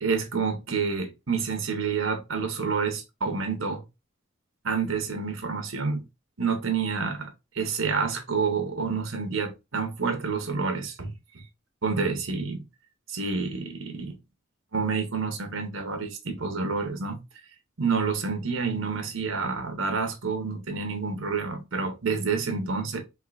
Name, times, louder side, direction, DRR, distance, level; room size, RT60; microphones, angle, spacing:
voice 1, 0.0-3.8 4.6-6.0 6.4-11.4 11.8-12.6 13.1-14.2 14.7-17.2 17.8-23.0, right 5 dB, 85° right, 1.0 m, -28 dB
4.5 x 2.7 x 2.5 m
head